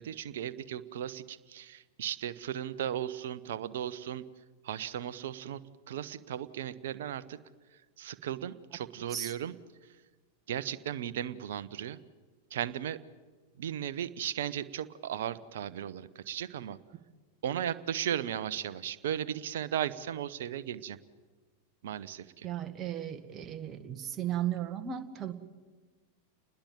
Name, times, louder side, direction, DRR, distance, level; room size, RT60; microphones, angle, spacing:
voice 1, 0.0-4.2 4.6-5.6 5.9-7.4 8.0-9.5 10.5-12.0 12.5-13.0 13.6-16.8 17.4-21.0 21.8-22.5, right 10 dB, 60° right, 15 dB, 1.0 m, -36 dB
voice 2, 22.4-25.3, right 10 dB, 25° right, 8 dB, 1.9 m, -35 dB
29.5 x 20.5 x 7.6 m, 1.4 s
figure-of-eight pair, 90°, 0 cm